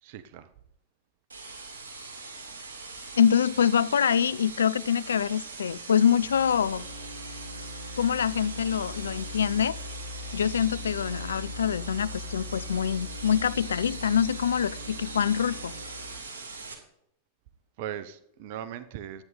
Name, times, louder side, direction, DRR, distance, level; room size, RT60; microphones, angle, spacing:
voice 1, 0.0-0.5 17.8-19.2, right 10 dB, 50° right, 0.7 m, -39 dB
sound 1, 1.3-16.7, right 3 dB, 70° right, 2.7 m, -42 dB
voice 2, 3.2-6.9 8.0-9.8 10.3-15.7, left 8 dB, 70° left, 0.3 m, -25 dB
sound 2, 6.2-16.2, left 2 dB, 85° left, 0.8 m, -41 dB
12.0 x 9.2 x 3.8 m
figure-of-eight pair, 90°, 0 cm